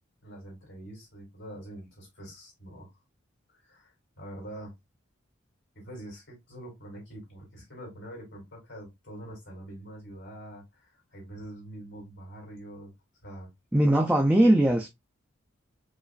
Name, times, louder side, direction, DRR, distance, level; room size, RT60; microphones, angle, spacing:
voice 1, 0.2-2.9 3.6-4.7 5.7-12.9 13.2-13.5, right 1 dB, 60° left, 2.6 m, -44 dB
voice 2, 13.7-14.9, right 1 dB, 5° right, 0.4 m, -20 dB
5.0 x 2.5 x 2.3 m
head